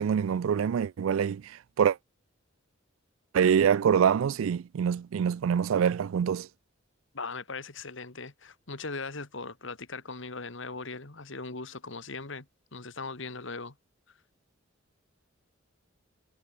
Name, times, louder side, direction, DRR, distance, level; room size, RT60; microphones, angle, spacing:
voice 1, 0.0-2.0 3.3-6.5, right 7 dB, 80° right, 0.3 m, -25 dB
voice 2, 7.1-12.5 12.7-13.7, left 3 dB, 65° left, 2.3 m, -39 dB
head